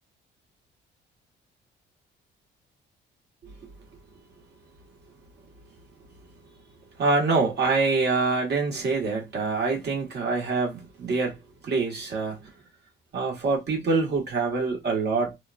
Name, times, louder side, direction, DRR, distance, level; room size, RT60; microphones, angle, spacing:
voice 1, 7.0-11.4 11.6-12.5 13.1-15.4, right 4 dB, 55° right, 1.6 m, -25 dB
3.0 x 2.3 x 2.5 m
cardioid pair, 90°, 20 cm